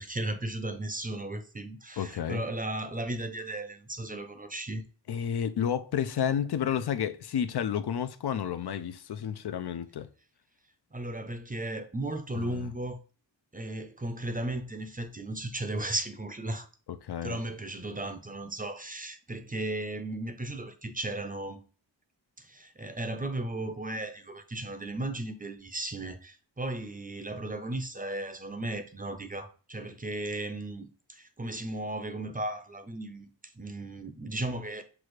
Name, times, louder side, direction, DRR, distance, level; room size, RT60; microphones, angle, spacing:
voice 1, 0.0-4.8 10.9-13.0 13.5-16.7 17.2-21.6 22.4-34.8, right 1 dB, 20° right, 0.6 m, -35 dB
voice 2, 2.0-2.4 5.1-10.1 12.3-12.7 16.9-17.4, left 8 dB, 65° left, 0.5 m, -31 dB
6.1 x 2.4 x 3.1 m
wide cardioid pair, 75°, 44 cm